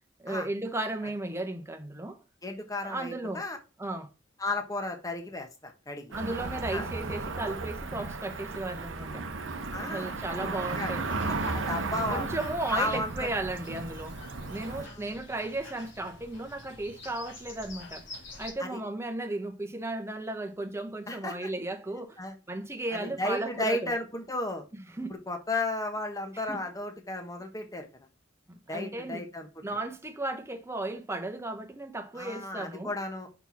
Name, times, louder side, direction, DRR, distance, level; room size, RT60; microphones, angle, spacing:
voice 1, 0.2-2.2 2.8-3.5 3.8-4.1 6.1-9.3 9.8-11.1 11.8-14.2 14.5-18.0 18.4-22.2 22.5-23.9 24.7-25.1 26.5-26.6 28.5-29.2 29.6-32.9, right 2 dB, 15° right, 1.0 m, -35 dB
voice 2, 2.4-3.6 4.4-6.1 6.7-6.9 9.7-10.2 10.7-10.9 11.4-12.3 12.7-13.3 14.7-15.1 18.6-18.8 21.1-21.5 22.2-22.3 22.9-24.6 25.1-27.9 28.7-29.5 32.1-33.3, left 2 dB, 20° left, 1.2 m, -34 dB
Cricket / Motor vehicle (road), 6.1-14.8, right 3 dB, 80° right, 0.8 m, -35 dB
sound 1, 11.0-18.5, left 2 dB, 75° left, 3.2 m, -47 dB
5.9 x 4.5 x 5.9 m
head